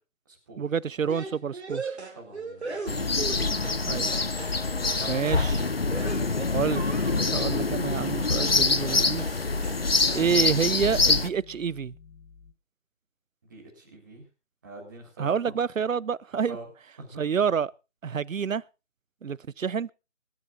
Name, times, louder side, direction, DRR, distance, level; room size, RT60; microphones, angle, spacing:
voice 1, 0.6-1.8 3.9-4.1 5.1-5.6 6.5-9.4 10.1-11.9 15.2-16.6 17.2-17.7 18.0-18.6 19.2-19.9, right 7 dB, 80° right, 0.7 m, -28 dB
sound 1, 1.1-3.8 4.1-4.6 4.8-5.0 5.3-7.4 8.4-8.6 8.9-9.4 9.6-9.8 10.1-10.6, right 4 dB, 55° right, 2.8 m, -38 dB
voice 2, 2.2-3.2 4.9-5.4 6.0-6.2 13.5-14.2 14.6-15.3 16.5-16.7 17.0-17.2, right 3 dB, 15° right, 3.9 m, -44 dB
sound 2, 2.9-11.3, left 3 dB, 50° left, 0.8 m, -25 dB
sound 3, 6.8-12.5, left 6 dB, 75° left, 2.1 m, -50 dB
25.0 x 12.5 x 2.5 m
figure-of-eight pair, 175°, 39 cm